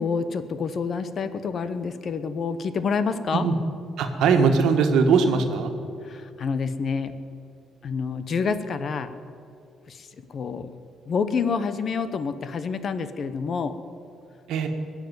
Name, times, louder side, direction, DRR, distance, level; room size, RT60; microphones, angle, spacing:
voice 1, 0.0-3.5 6.0-7.1 7.8-9.1 9.9-10.7 11.1-13.7, left 5 dB, 40° left, 12 dB, 0.8 m, -28 dB
voice 2, 4.0-5.7 14.5-14.7, right 5 dB, 80° right, 5 dB, 1.6 m, -20 dB
20.5 x 7.4 x 9.3 m, 2.5 s
cardioid pair, 150°, 0 cm